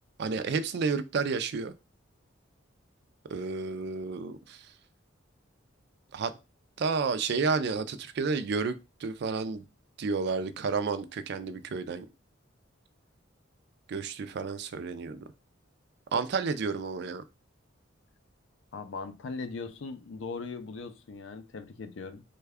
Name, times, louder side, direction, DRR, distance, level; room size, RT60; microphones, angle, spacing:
voice 1, 0.2-1.7 3.3-4.7 6.1-6.3 6.8-8.8 9.0-9.6 10.0-12.1 13.9-15.2 16.1-17.2, right 4 dB, 55° right, 0.4 m, -31 dB
voice 2, 18.7-22.2, left 4 dB, 70° left, 0.4 m, -39 dB
3.3 x 2.2 x 3.4 m
head